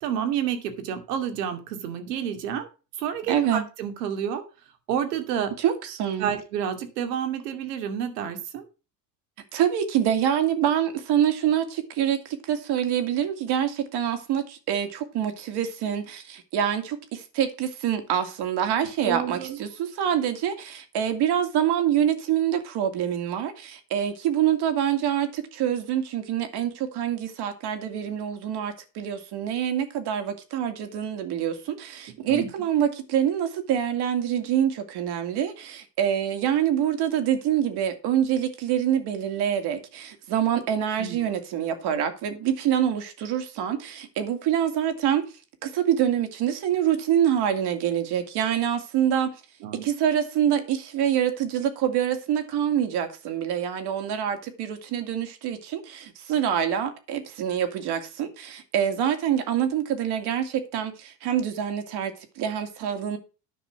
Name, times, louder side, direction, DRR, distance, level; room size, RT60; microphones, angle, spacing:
voice 1, 0.0-2.7 3.0-4.4 4.9-5.5 6.2-8.6 19.0-19.6 32.3-32.5 41.0-41.3 49.6-49.8, right 8 dB, 70° right, 2.5 m, -29 dB
voice 2, 3.3-3.6 5.6-6.3 9.5-45.2 45.6-49.3 49.8-63.2, right 9 dB, 50° right, 2.6 m, -26 dB
10.0 x 6.1 x 6.0 m
hypercardioid pair, 80°, 49 cm